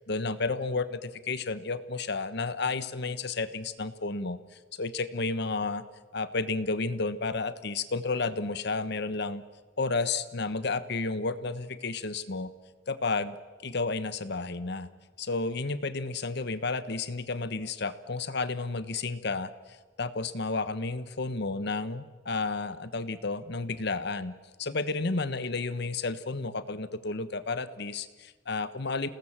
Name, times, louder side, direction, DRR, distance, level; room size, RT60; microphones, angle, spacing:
voice 1, 0.1-4.4 4.8-5.8 6.1-9.4 9.8-12.5 12.9-13.3 13.6-14.9 15.2-19.5 20.0-24.3 24.6-29.1, left 3 dB, 60° left, 12 dB, 1.2 m, -31 dB
28.5 x 19.0 x 7.5 m, 1.3 s
head